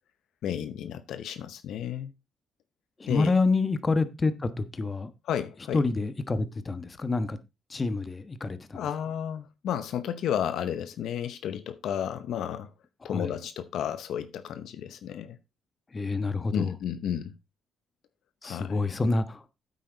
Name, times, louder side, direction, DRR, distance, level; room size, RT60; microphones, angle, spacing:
voice 1, 0.4-2.1 3.1-3.3 5.2-5.8 8.7-12.7 13.0-15.4 16.5-17.4 18.4-18.8, left 9 dB, 75° left, 0.8 m, -32 dB
voice 2, 3.0-5.1 5.7-7.4 7.7-8.9 13.0-13.4 15.9-16.7 18.4-19.4, left 3 dB, 30° left, 1.2 m, -27 dB
9.2 x 8.2 x 3.9 m
cardioid pair, 90°, 0 cm